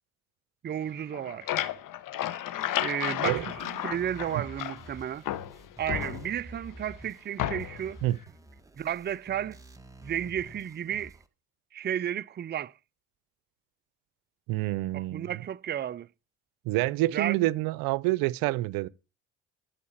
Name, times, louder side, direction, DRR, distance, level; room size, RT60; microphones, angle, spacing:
voice 1, 0.6-1.6 2.8-3.6 3.8-5.2 5.8-8.0 8.8-9.6 10.0-11.2 11.7-12.7 14.9-16.1 17.1-17.3, right 10 dB, 30° right, 0.5 m, -33 dB
sound 1, 1.0-4.9 5.2-6.6 7.4-7.9, left 12 dB, 70° left, 1.2 m, -33 dB
sound 2, 3.3-11.3, right 1 dB, 10° right, 1.5 m, -49 dB
voice 2, 14.5-15.3 16.7-18.9, right 18 dB, 85° right, 0.6 m, -27 dB
13.5 x 4.9 x 7.2 m
supercardioid pair, 75°, 34 cm